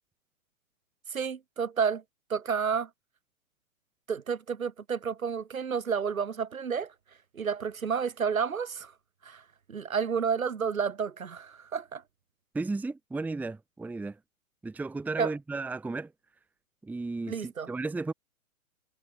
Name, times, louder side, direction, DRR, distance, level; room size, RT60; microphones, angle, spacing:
voice 1, 1.1-2.0 2.3-2.9 4.1-6.9 7.3-8.9 9.2-9.4 9.7-12.0 15.2-15.3 17.3-17.7, right 6 dB, 75° right, 7.0 m, -30 dB
voice 2, 12.5-14.2 14.6-16.1 16.8-18.1, right 3 dB, 5° right, 1.2 m, -34 dB
figure-of-eight pair, 125°, 42 cm